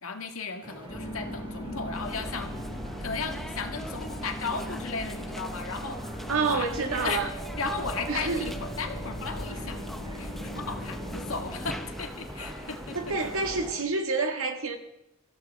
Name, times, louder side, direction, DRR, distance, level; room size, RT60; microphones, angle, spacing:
voice 1, 0.0-2.5 3.0-6.0 6.4-6.7 7.0-7.2 7.6-9.8 10.1-13.0, left 4 dB, 85° left, 4 dB, 1.8 m, -35 dB
sound 1, 0.6-13.8, right 1 dB, 25° right, 2.2 m, -46 dB
sound 2, 0.9-11.8, equal, 30° left, 4.7 m, -39 dB
sound 3, 1.9-13.7, equal, ahead, 0.8 m, -41 dB
voice 2, 6.3-7.3 8.1-8.5 12.6-14.8, right 4 dB, 85° right, 4 dB, 1.9 m, -28 dB
25.0 x 14.5 x 3.6 m, 0.84 s
head